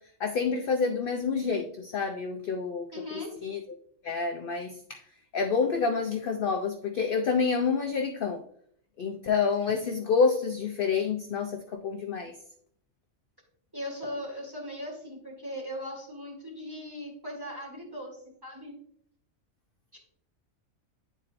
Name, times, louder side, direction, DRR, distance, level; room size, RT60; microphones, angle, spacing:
voice 1, 0.2-2.9 3.4-3.6 4.0-5.0 5.3-8.4 9.0-12.3, left 5 dB, 60° left, 4 dB, 0.6 m, -28 dB
voice 2, 2.9-3.3 13.7-18.7 19.9-20.0, equal, 15° right, -2 dB, 2.0 m, -39 dB
10.0 x 4.3 x 2.5 m, 0.65 s
omnidirectional pair, 1.4 m